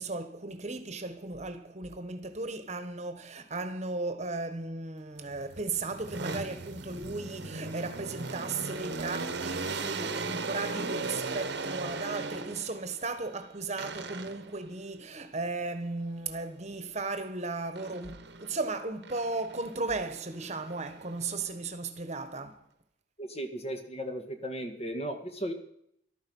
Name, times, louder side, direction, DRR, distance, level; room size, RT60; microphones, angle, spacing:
voice 1, 0.0-22.6, right 3 dB, 35° right, 1.3 m, -36 dB
sound 1, 5.2-12.9 13.8-14.6 17.7-18.6 19.0-21.4, right 3 dB, 60° right, 1.2 m, -38 dB
voice 2, 23.2-25.5, right 1 dB, 30° left, 1.8 m, -36 dB
14.0 x 12.5 x 5.5 m
head